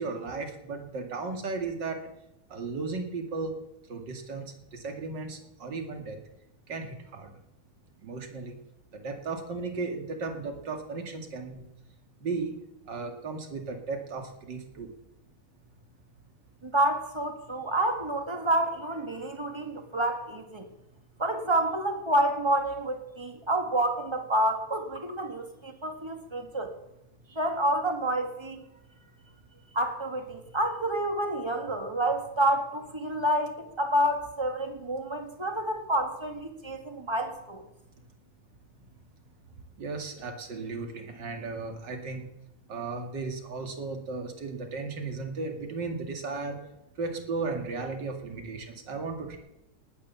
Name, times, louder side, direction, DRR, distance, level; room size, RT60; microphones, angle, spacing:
voice 1, 0.0-2.0 2.5-3.5 3.9-6.2 6.7-7.3 8.0-8.6 8.9-11.7 12.2-12.6 12.9-14.9 27.3-27.4 39.8-42.2 42.7-46.6 47.0-49.4, right 4 dB, 40° right, 4 dB, 2.6 m, -35 dB
voice 2, 16.6-20.7 21.2-26.7 27.3-28.6 29.7-37.6, right 1 dB, 10° right, 5 dB, 1.4 m, -28 dB
19.0 x 10.0 x 7.1 m, 0.88 s
omnidirectional pair, 3.5 m